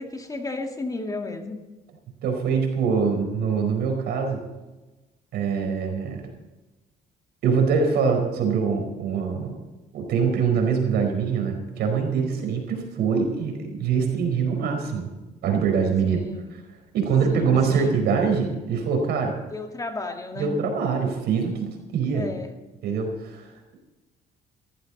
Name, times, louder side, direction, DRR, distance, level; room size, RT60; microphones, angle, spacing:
voice 1, 0.0-1.6 16.0-16.5 17.3-18.0 19.5-20.6 22.1-22.5, left 3 dB, 20° left, 4 dB, 1.9 m, -33 dB
voice 2, 2.2-4.4 5.3-6.3 7.4-9.6 9.9-15.1 15.4-16.2 16.5-16.6 16.9-19.3 20.4-22.3 22.8-23.8, right 6 dB, 75° right, 3 dB, 4.8 m, -24 dB
18.5 x 14.5 x 4.1 m, 1.1 s
cardioid pair, 110°, 17 cm